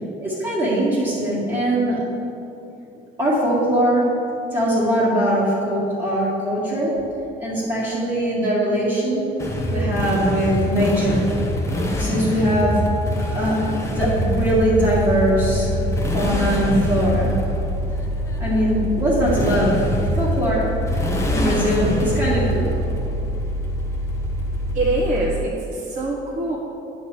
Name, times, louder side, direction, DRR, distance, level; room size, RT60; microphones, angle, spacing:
voice 1, 0.2-2.0 3.2-4.0 4.5-6.9 7.4-9.2 9.7-11.3 12.0-12.8 13.2-15.7 16.1-17.3 18.4-20.6 21.3-22.8, equal, 20° right, -10 dB, 1.9 m, -21 dB
Motorcycle, 9.4-25.2, equal, 15° left, 1.1 m, -25 dB
sound 1, 14.0-25.4, equal, 75° right, 2.0 m, -28 dB
voice 2, 24.7-26.6, right 2 dB, 45° right, -7 dB, 1.6 m, -24 dB
9.4 x 4.3 x 6.6 m, 2.8 s
cardioid pair, 125°, 19 cm